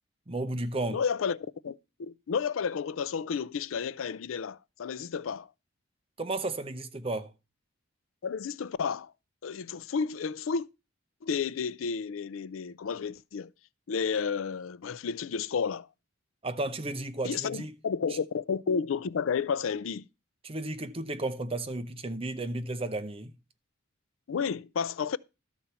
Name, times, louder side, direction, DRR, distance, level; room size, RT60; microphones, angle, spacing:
voice 1, 0.3-1.0 6.2-7.3 16.4-17.7 20.4-23.3, right 2 dB, 30° right, 0.8 m, -33 dB
voice 2, 0.9-5.5 8.2-9.1 9.4-10.7 11.2-13.5 13.9-15.9 17.2-20.1 24.3-25.2, left 6 dB, 80° left, 0.4 m, -31 dB
13.0 x 4.4 x 6.8 m
head